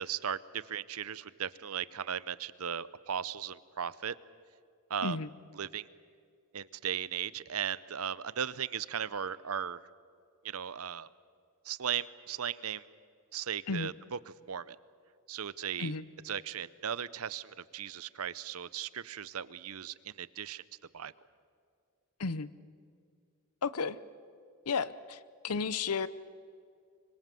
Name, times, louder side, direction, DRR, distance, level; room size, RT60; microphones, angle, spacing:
voice 1, 0.0-4.1 4.9-5.2 5.6-5.9 6.5-9.8 10.4-11.1 11.6-12.8 13.3-14.2 14.5-14.8 15.3-15.9 16.2-20.6 20.9-21.1, right 8 dB, 70° right, 17 dB, 0.7 m, -37 dB
voice 2, 23.6-24.0 24.7-26.1, left 4 dB, 85° left, 16 dB, 0.9 m, -33 dB
25.5 x 24.0 x 7.7 m, 2.3 s
head